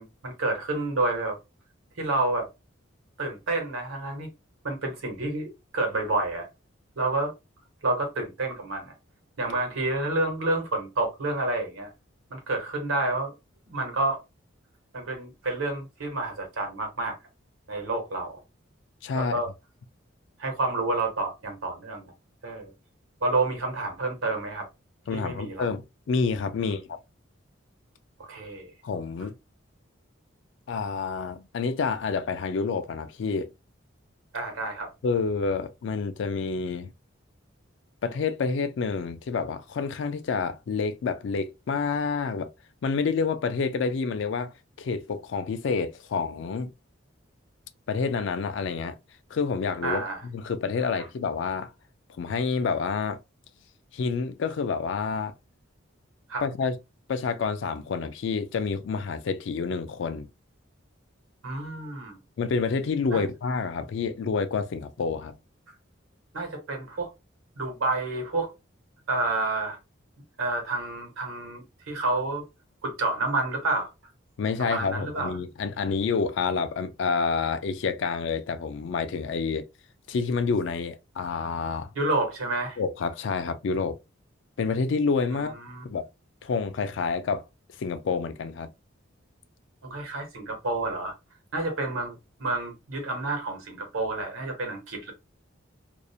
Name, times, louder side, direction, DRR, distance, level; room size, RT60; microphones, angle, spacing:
voice 1, 0.0-1.4 2.0-2.5 3.2-4.3 4.6-6.5 7.0-7.3 7.8-8.9 9.4-11.9 12.3-13.3 13.7-14.2 14.9-17.2 17.7-18.4 19.1-19.5 20.4-22.1 22.4-22.7 23.2-24.7 25.1-25.7 26.6-26.8 28.3-28.7 34.3-34.9 49.8-50.2 56.3-56.4 61.4-62.2 63.1-63.2 66.3-67.1 67.6-68.5 69.1-69.8 70.4-72.5 72.8-73.9 74.6-75.3 82.0-82.8 85.3-85.8 89.8-91.1 91.5-95.1, right 2 dB, 90° right, 1.0 m, -29 dB
voice 2, 19.0-19.4 25.1-25.8 26.1-26.8 28.8-29.3 30.7-33.5 35.0-36.9 38.0-42.5 42.8-44.5 44.8-46.7 47.9-49.0 49.3-51.7 52.2-53.2 53.9-55.3 56.4-56.8 57.1-60.3 62.4-65.4 74.4-79.6 80.1-81.9 82.8-84.0 84.6-85.6 85.8-86.1 86.4-87.4 87.8-88.7, left 5 dB, 65° left, 0.3 m, -28 dB
2.4 x 2.0 x 2.7 m
head